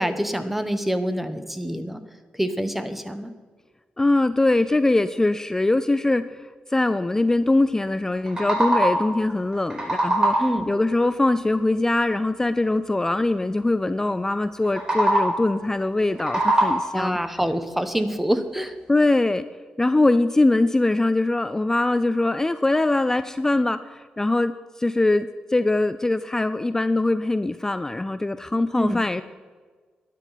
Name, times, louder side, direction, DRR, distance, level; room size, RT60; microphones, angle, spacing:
voice 1, 0.0-2.0 2.4-3.3 10.4-10.7 16.9-18.8 28.8-29.0, equal, 5° right, 10 dB, 1.0 m, -26 dB
voice 2, 4.0-10.4 10.7-17.2 18.9-19.5 19.8-29.2, left 2 dB, 15° left, 12 dB, 0.4 m, -22 dB
sound 1, 8.1-9.2 9.5-10.7 14.6-15.5 16.0-17.1, right 1 dB, 25° right, 4.5 m, -22 dB
12.0 x 9.9 x 5.7 m, 1.5 s
cardioid pair, 85°, 3 cm